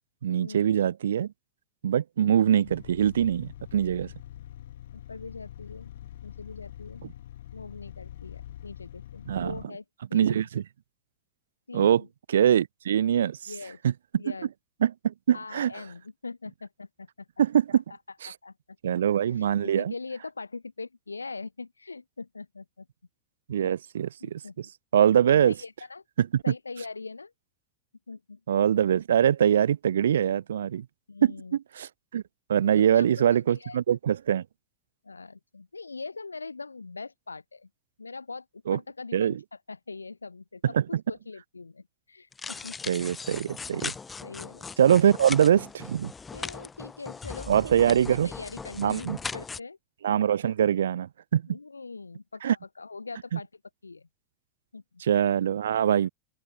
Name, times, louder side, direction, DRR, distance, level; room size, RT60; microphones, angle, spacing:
voice 1, 0.2-1.3 1.8-4.1 9.3-9.6 10.1-10.6 11.7-12.0 12.3-13.5 13.8-14.2 14.8-15.7 17.4-17.8 18.2-18.3 18.8-19.9 23.5-24.7 24.9-25.5 26.2-26.4 28.5-30.9 31.2-32.2 32.5-34.4 38.7-38.8 39.1-39.4 40.7-41.0 42.9-43.9 44.8-46.1 47.5-48.3 48.8-49.2 50.0-51.6 52.4-52.6 53.3-53.4 55.0-56.1, right 9 dB, 65° right, 0.5 m, -23 dB
sound 1, 2.6-9.7, left 12 dB, 60° left, 1.6 m, -44 dB
voice 2, 4.9-5.9 6.2-7.0 7.5-9.8 10.1-10.5 11.7-12.1 13.5-13.8 14.2-14.5 15.3-17.3 17.7-17.8 18.3-18.5 18.9-19.0 19.4-22.9 23.6-23.8 24.2-24.6 25.4-26.0 26.4-27.3 28.1-28.4 31.1-31.6 32.7-33.8 35.0-37.7 38.0-38.5 38.7-39.4 39.7-42.9 44.2-44.7 46.3-47.5 47.8-49.8 51.5-53.5 53.8-54.1 54.7-54.8, left 4 dB, 80° left, 2.5 m, -41 dB
sound 2, 42.3-49.6, left 5 dB, 15° left, 1.6 m, -39 dB
open air
figure-of-eight pair, 90°, 0 cm